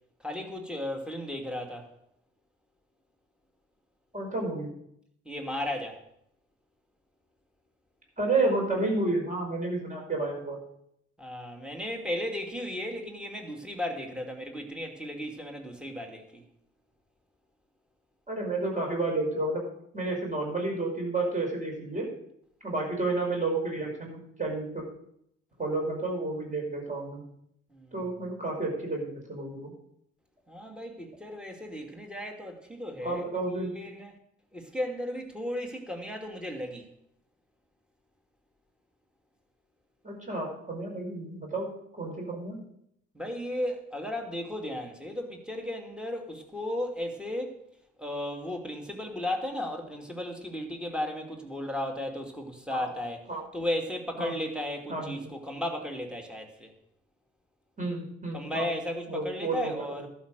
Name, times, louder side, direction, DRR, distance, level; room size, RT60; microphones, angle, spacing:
voice 1, 0.2-1.9 5.3-6.0 11.2-16.4 27.7-28.0 30.5-34.1 34.5-36.9 43.1-47.5 48.0-53.2 53.5-56.7 58.3-60.1, left 1 dB, ahead, 3 dB, 2.6 m, -35 dB
voice 2, 4.1-4.7 8.2-10.6 18.3-19.6 19.9-22.1 22.6-24.9 25.6-27.2 27.9-29.7 33.0-33.7 40.0-41.7 41.9-42.6 52.7-52.9 53.3-53.4 54.2-54.3 54.9-55.2 57.8-58.7 59.1-59.9, right 2 dB, 20° right, 0 dB, 5.3 m, -31 dB
11.5 x 6.2 x 7.7 m, 0.73 s
figure-of-eight pair, 40°, 36 cm